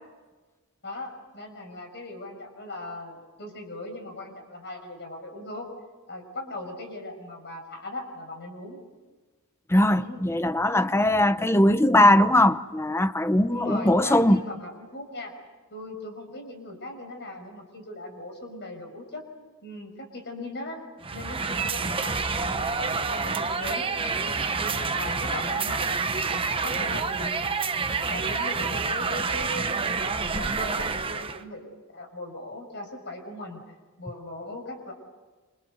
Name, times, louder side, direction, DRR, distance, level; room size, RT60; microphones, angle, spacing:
voice 1, 0.8-5.7 6.1-8.8 9.9-10.2 10.7-11.0 13.5-15.3 15.7-19.2 19.6-20.8 21.1-23.9 24.6-25.8 26.6-33.6 34.0-34.9, left 1 dB, 50° left, 6.4 m, -39 dB
voice 2, 9.7-14.4, left 1 dB, 10° left, 0.8 m, -20 dB
sound 1, 21.0-31.4, right 4 dB, 25° right, 1.1 m, -28 dB
28.0 x 27.0 x 6.9 m
head